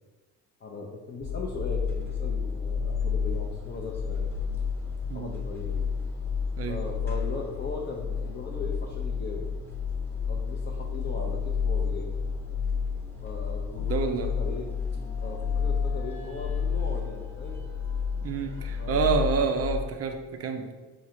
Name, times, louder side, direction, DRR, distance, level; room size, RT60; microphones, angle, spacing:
voice 1, 0.6-4.3 5.1-5.8 6.7-9.5 10.3-12.1 13.2-14.7 15.2-17.7 18.8-19.2, left 4 dB, 25° left, -2 dB, 0.6 m, -38 dB
sound 1, 1.2-19.8, left 6 dB, 5° left, 0.9 m, -31 dB
voice 2, 13.8-14.3 18.2-20.7, right 5 dB, 30° right, 5 dB, 0.6 m, -28 dB
4.7 x 2.5 x 2.8 m, 1.2 s
hypercardioid pair, 55°, 46 cm